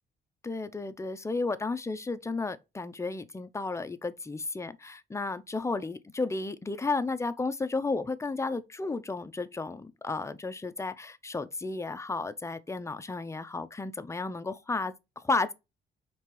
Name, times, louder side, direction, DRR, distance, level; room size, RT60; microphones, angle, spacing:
voice 1, 0.4-15.5, left 3 dB, 15° left, 0.4 m, -33 dB
4.5 x 3.4 x 3.0 m
cardioid pair, 90°, 20 cm